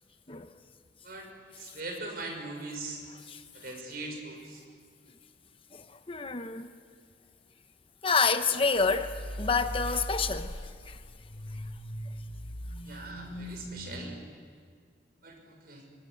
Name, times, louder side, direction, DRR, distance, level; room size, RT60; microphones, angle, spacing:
voice 1, 1.0-3.0 3.5-4.6 12.8-14.2 15.2-15.9, right 2 dB, 60° right, 6.3 m, -41 dB
voice 2, 5.7-6.7 8.0-11.0, left 4 dB, 30° left, 1.0 m, -28 dB
sound 1, 8.7-14.0, equal, 70° left, 3.4 m, -40 dB
25.0 x 22.0 x 9.9 m
head